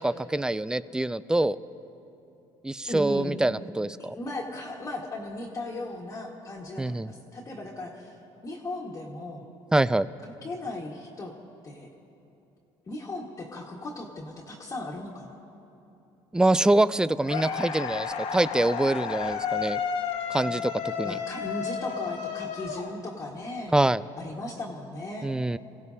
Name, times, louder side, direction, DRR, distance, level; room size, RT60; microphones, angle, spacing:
voice 1, 0.0-1.6 2.6-4.2 6.8-7.1 9.7-10.1 16.3-19.8 20.3-20.7 21.0-21.2 23.7-24.0 25.2-25.6, right 2 dB, 5° right, 16 dB, 0.3 m, -25 dB
voice 2, 2.9-3.4 4.1-8.1 8.4-9.5 10.2-11.3 11.6-11.9 12.9-15.4 20.4-23.7 24.2-25.3, left 2 dB, 30° left, -3 dB, 1.6 m, -37 dB
sound 1, 17.3-23.4, left 7 dB, 65° left, 1.2 m, -32 dB
28.0 x 16.0 x 2.8 m, 2.9 s
cardioid pair, 105°, 11 cm